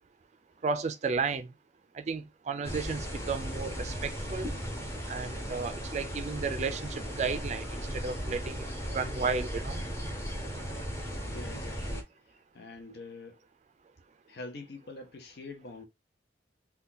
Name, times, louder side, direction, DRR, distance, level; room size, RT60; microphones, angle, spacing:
voice 1, 0.6-1.5 1.9-4.5 5.1-8.7 8.9-9.8, right 5 dB, 40° right, 0.4 m, -33 dB
sound 1, 2.6-12.0, equal, 15° left, 0.9 m, -36 dB
voice 2, 11.2-13.4 14.3-15.8, left 3 dB, 60° left, 0.6 m, -45 dB
2.7 x 2.3 x 3.7 m
head